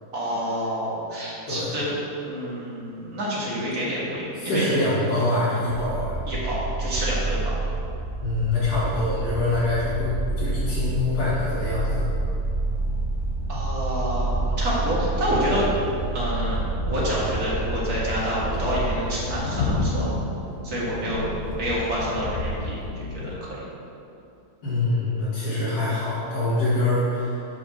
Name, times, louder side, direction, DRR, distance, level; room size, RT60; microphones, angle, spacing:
voice 1, 0.1-1.9 2.2-4.6 6.3-7.6 13.5-15.7 16.1-16.6 16.9-20.1 20.6-21.3 21.5-23.6, equal, 75° right, -7 dB, 2.2 m, -28 dB
voice 2, 4.3-6.2 8.2-12.1 24.6-27.5, left 2 dB, 80° left, -10 dB, 1.9 m, -25 dB
sound 1, 5.7-19.4, right 2 dB, 50° right, 1.4 m, -28 dB
sound 2, 10.2-23.4, left 2 dB, 55° left, 1.0 m, -33 dB
5.0 x 4.9 x 6.1 m, 2.7 s
omnidirectional pair, 1.6 m